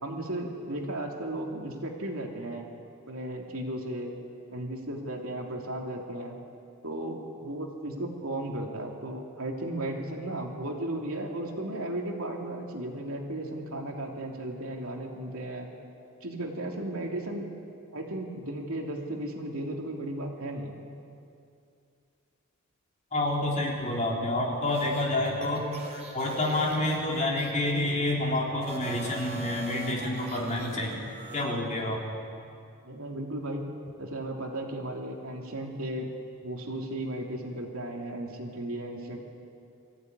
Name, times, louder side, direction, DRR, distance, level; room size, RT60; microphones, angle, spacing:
voice 1, 0.0-2.7 3.1-4.1 4.5-6.4 6.8-15.7 16.2-17.5 17.9-20.7 32.8-33.6 34.0-36.1 36.4-39.2, right 1 dB, 70° right, 1 dB, 3.0 m, -35 dB
voice 2, 23.1-25.7 26.1-31.0 31.3-32.0, left 1 dB, 35° left, -1 dB, 3.6 m, -28 dB
sound 1, 24.7-28.2 28.6-31.5, right 2 dB, 30° right, 3.6 m, -42 dB
23.0 x 15.5 x 9.6 m, 2.5 s
head